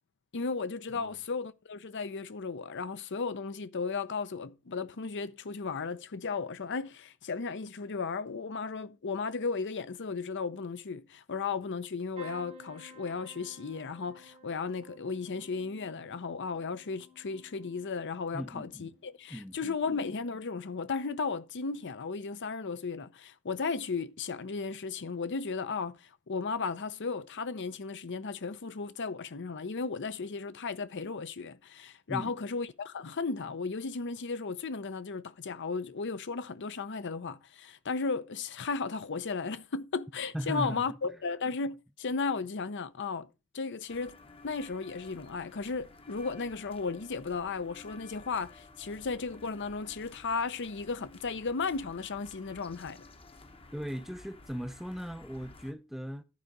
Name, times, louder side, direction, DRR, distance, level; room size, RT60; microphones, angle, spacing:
voice 1, 0.3-43.3 43.5-44.2 44.4-53.0, left 4 dB, 55° left, 0.6 m, -35 dB
sound 1, 12.2-20.0 20.4-21.0 22.2-22.4 22.7-22.8, right 1 dB, 30° right, 1.0 m, -55 dB
voice 2, 18.3-18.9 19.3-19.8 32.1-32.3 40.3-40.8 53.7-56.2, equal, ahead, 0.5 m, -38 dB
sound 2, 43.9-55.7, left 3 dB, 25° left, 0.9 m, -53 dB
11.5 x 4.8 x 5.3 m
head